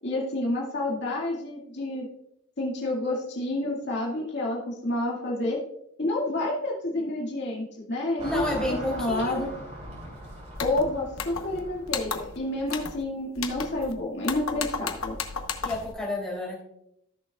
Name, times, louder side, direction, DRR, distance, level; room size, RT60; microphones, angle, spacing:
voice 1, 0.0-2.1 2.6-5.6 6.0-9.5 10.6-15.2, left 2 dB, 55° left, -3 dB, 2.2 m, -29 dB
voice 2, 8.2-9.4 15.6-16.6, left 1 dB, 5° left, -4 dB, 3.0 m, -30 dB
Car passing by / Traffic noise roadway noise, 8.2-12.8, equal, 35° right, 3.1 m, -40 dB
sound 1, 10.6-10.8 11.2-11.6 11.9-12.4 12.7-13.0 13.4-13.9 14.2-15.9, left 5 dB, 85° left, 1.0 m, -34 dB
14.5 x 6.5 x 2.4 m, 0.76 s
head